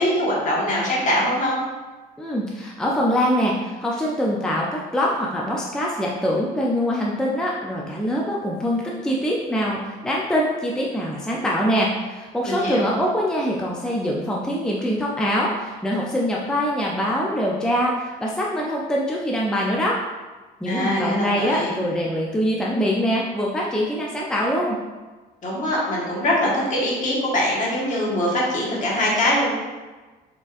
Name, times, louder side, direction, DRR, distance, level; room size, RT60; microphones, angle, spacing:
voice 1, 0.0-1.6 12.4-12.9 20.6-21.7 25.4-29.5, left 1 dB, 50° left, -5 dB, 1.4 m, -23 dB
voice 2, 2.2-20.0 20.6-24.8, equal, 5° left, -3 dB, 0.4 m, -24 dB
4.0 x 3.6 x 2.5 m, 1.3 s
cardioid pair, 110°, 17 cm